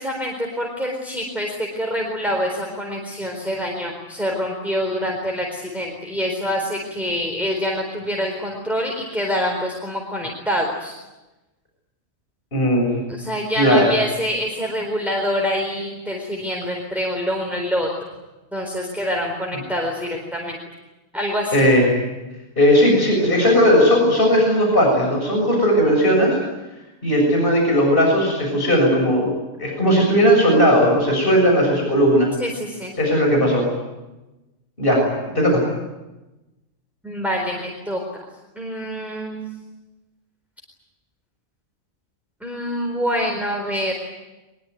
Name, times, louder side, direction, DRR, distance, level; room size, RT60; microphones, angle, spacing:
voice 1, 0.0-10.9 13.2-17.9 18.5-20.6 21.1-21.7 32.4-32.9 37.0-38.3 38.6-39.5 42.4-43.9, equal, ahead, -1 dB, 4.1 m, -26 dB
voice 2, 12.5-13.0 13.6-13.9 21.5-21.8 22.6-26.3 27.0-29.3 29.6-32.3 33.0-33.6 34.8-35.0 35.3-35.6, equal, 45° left, 0 dB, 7.2 m, -17 dB
23.0 x 22.5 x 9.4 m, 1.1 s
omnidirectional pair, 1.3 m